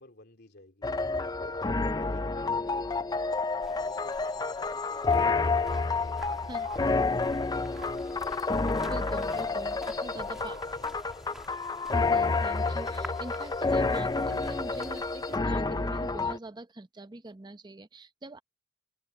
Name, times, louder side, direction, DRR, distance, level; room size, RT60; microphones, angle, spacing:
voice 1, 0.0-1.7 2.1-3.0 3.5-5.5 5.9-6.1 6.6-7.9 9.8-10.9, left 2 dB, 55° left, 3.2 m, -52 dB
sound 1, 0.8-16.4, left 3 dB, 20° left, 0.4 m, -29 dB
sound 2, 3.5-15.4, right 4 dB, 70° right, 5.3 m, -57 dB
sound 3, 3.6-15.4, equal, ahead, 2.4 m, -50 dB
voice 2, 6.5-7.1 8.8-10.6 11.9-18.4, right 2 dB, 20° right, 0.7 m, -43 dB
head